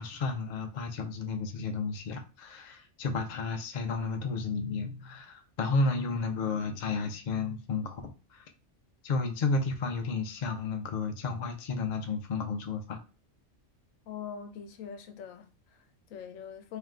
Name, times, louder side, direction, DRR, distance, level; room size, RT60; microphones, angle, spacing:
voice 1, 0.0-8.0 8.3-8.4 9.0-13.0, left 3 dB, 50° left, 0.5 m, -32 dB
voice 2, 14.1-16.8, left 7 dB, 90° left, 1.0 m, -43 dB
3.4 x 2.8 x 3.6 m
omnidirectional pair, 1.3 m